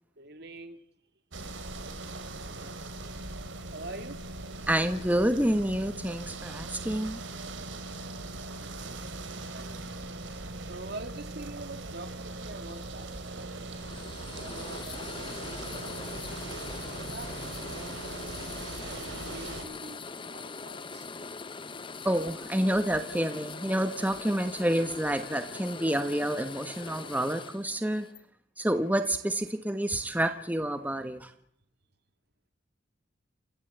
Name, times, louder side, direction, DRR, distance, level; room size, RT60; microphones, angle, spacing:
voice 1, 0.2-0.8 3.7-4.2 8.6-9.0 9.5-10.1 10.6-13.5 14.3-15.9 16.9-18.3 18.8-21.1, right 2 dB, 60° right, 2.5 m, -45 dB
sound 1, 1.3-19.7, right 2 dB, 85° right, 3.2 m, -40 dB
voice 2, 4.7-7.2 22.0-28.1 28.6-31.3, right 1 dB, 10° right, 1.2 m, -28 dB
sound 2, 12.7-28.2, left 4 dB, 25° left, 0.8 m, -42 dB
28.5 x 15.5 x 8.1 m
head